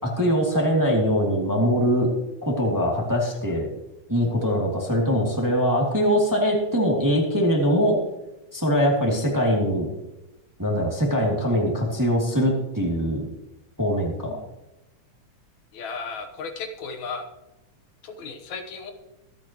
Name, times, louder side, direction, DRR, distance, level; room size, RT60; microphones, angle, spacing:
voice 1, 0.0-2.1 2.4-3.7 4.1-8.0 8.5-9.9 10.6-13.3 13.8-14.4, equal, 5° right, -2 dB, 1.9 m, -22 dB
voice 2, 15.7-17.3 18.0-18.9, left 4 dB, 75° left, 6 dB, 2.5 m, -35 dB
25.0 x 8.4 x 3.0 m, 0.97 s
omnidirectional pair, 3.3 m